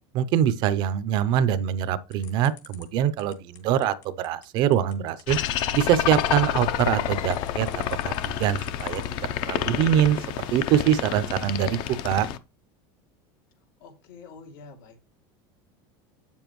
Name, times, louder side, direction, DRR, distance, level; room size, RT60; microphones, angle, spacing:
voice 1, 0.1-5.4 5.7-9.0 9.5-10.2 10.5-11.8 12.0-12.3, right 10 dB, 40° right, 0.6 m, -24 dB
sound 1, 2.1-9.3, left 11 dB, 65° left, 2.7 m, -51 dB
sound 2, 5.3-12.4, left 11 dB, 45° left, 0.6 m, -29 dB
voice 2, 13.8-15.0, left 4 dB, 90° left, 2.7 m, -46 dB
8.4 x 7.1 x 3.1 m
cardioid pair, 170°, 11 cm